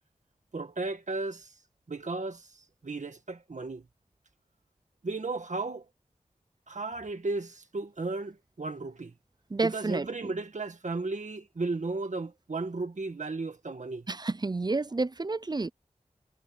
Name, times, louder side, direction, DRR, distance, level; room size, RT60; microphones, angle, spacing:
voice 1, 0.5-1.5 1.9-3.9 5.0-5.9 6.7-9.1 9.6-14.1, right 3 dB, 65° right, 1.8 m, -35 dB
voice 2, 9.5-10.1 14.1-15.7, right 3 dB, 30° right, 0.5 m, -30 dB
wide cardioid pair, 70°, 13 cm